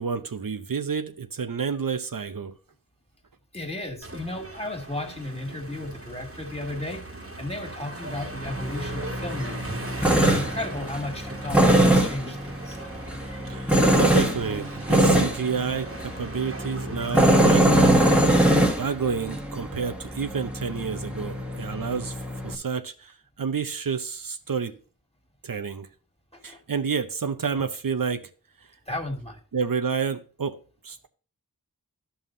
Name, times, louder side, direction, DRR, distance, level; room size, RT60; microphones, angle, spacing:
voice 1, 0.0-2.6 13.5-18.3 18.8-24.8 25.4-25.9 26.4-28.3 28.6-28.7 29.5-31.0, right 6 dB, 70° right, 0.7 m, -30 dB
voice 2, 3.5-9.7 10.2-12.8 26.3-26.6 28.9-29.4, left 1 dB, 15° left, 2.0 m, -34 dB
sound 1, 4.0-18.6, right 2 dB, 40° right, 1.6 m, -39 dB
Tools, 8.5-22.6, right 1 dB, 5° right, 1.4 m, -23 dB
13.0 x 5.6 x 2.6 m
wide cardioid pair, 65°, 36 cm